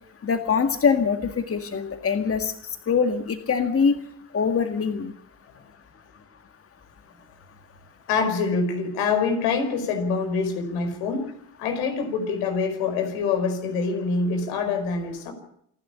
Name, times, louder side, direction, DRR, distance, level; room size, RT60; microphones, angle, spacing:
voice 1, 0.2-2.5 2.9-4.0 4.3-5.1, left 6 dB, 30° left, 7 dB, 2.0 m, -23 dB
voice 2, 8.1-11.3 11.6-15.3, left 4 dB, 70° left, 6 dB, 5.3 m, -25 dB
27.5 x 11.5 x 8.6 m, 0.70 s
hypercardioid pair, 65°, 48 cm